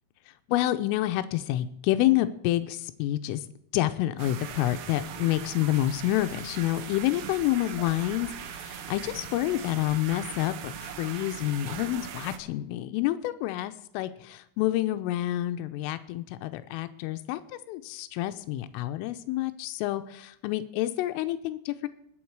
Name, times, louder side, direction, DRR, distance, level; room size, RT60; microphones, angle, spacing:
voice 1, 0.5-3.4 3.7-21.9, left 15 dB, 85° left, 10 dB, 3.3 m, -28 dB
sound 1, 4.2-12.4, right 8 dB, 80° right, 3.7 m, -40 dB
21.0 x 8.6 x 4.7 m, 0.73 s
omnidirectional pair, 5.7 m